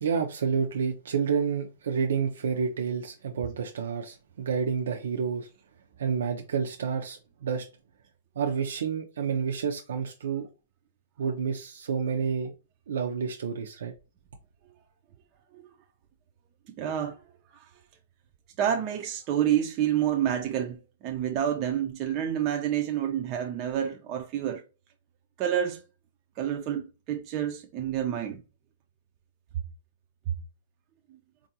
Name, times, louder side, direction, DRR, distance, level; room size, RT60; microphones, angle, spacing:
voice 1, 0.0-5.5 6.0-7.7 8.4-10.5 11.2-12.5 12.9-13.9, right 6 dB, 85° right, 0.5 m, -29 dB
voice 2, 16.7-17.2 17.5-17.7 18.6-24.6 25.4-25.8 26.4-28.4 30.3-30.4, right 10 dB, 30° right, 0.3 m, -28 dB
4.5 x 2.4 x 2.8 m
hypercardioid pair, 165°, 0 cm